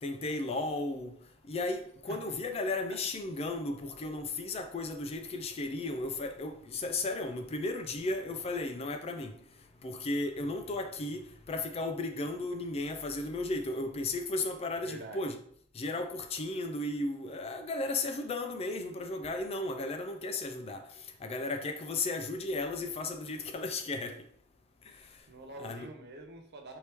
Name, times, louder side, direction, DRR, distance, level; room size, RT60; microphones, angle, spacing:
voice 1, 0.0-1.2 1.5-9.4 9.8-15.4 15.7-24.2 24.9-25.2 25.6-25.9, left 2 dB, 30° left, 0.3 m, -35 dB
voice 2, 14.8-15.2 24.9-26.8, right 2 dB, 50° right, 0.7 m, -47 dB
4.4 x 2.9 x 3.4 m
head